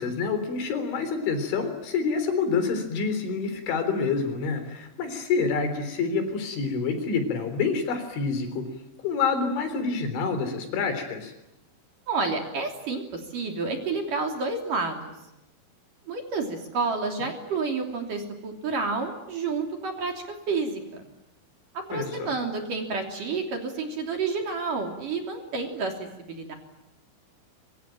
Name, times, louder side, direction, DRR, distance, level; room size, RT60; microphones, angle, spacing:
voice 1, 0.0-8.7 9.0-11.3 21.9-22.3, left 5 dB, 70° left, 9 dB, 6.0 m, -27 dB
voice 2, 12.1-15.1 16.1-20.1 20.5-21.0 21.7-25.9 26.3-26.5, right 4 dB, 45° right, 3 dB, 4.3 m, -29 dB
25.0 x 25.0 x 9.2 m, 0.91 s
omnidirectional pair, 5.7 m